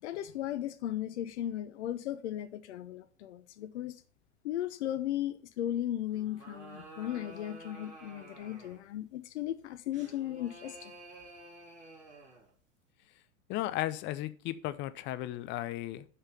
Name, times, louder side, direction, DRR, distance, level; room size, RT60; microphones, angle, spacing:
voice 1, 0.0-4.0 4.4-10.9, left 12 dB, 60° left, 0.8 m, -36 dB
sound 1, 6.1-8.9 9.9-12.5, right 2 dB, 20° right, 3.8 m, -51 dB
voice 2, 13.5-16.1, left 15 dB, 30° left, 0.6 m, -35 dB
5.8 x 5.5 x 6.8 m
hypercardioid pair, 105°, 39 cm